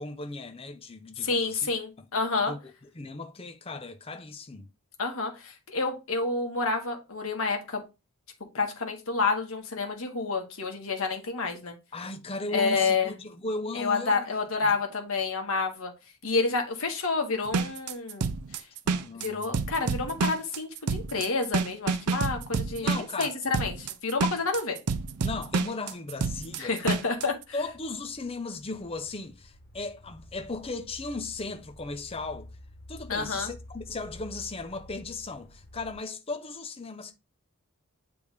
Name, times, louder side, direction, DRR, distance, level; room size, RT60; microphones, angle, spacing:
voice 1, 0.0-1.6 2.5-4.7 11.9-14.3 14.6-14.8 18.8-19.5 22.8-23.3 25.2-27.0 27.5-32.5 32.9-37.1, left 3 dB, 25° left, 0.6 m, -37 dB
voice 2, 1.2-2.5 5.0-7.8 8.5-11.8 12.5-13.1 13.7-15.9 16.2-18.6 19.2-24.8 26.6-27.3 33.1-33.5, left 4 dB, 70° left, 1.4 m, -29 dB
sound 1, 17.5-27.3, right 5 dB, 90° right, 0.5 m, -29 dB
sound 2, 24.5-24.6 25.2-25.3 25.8-26.3 26.6-35.9, left 1 dB, 40° left, 1.0 m, -50 dB
8.2 x 3.4 x 3.4 m
head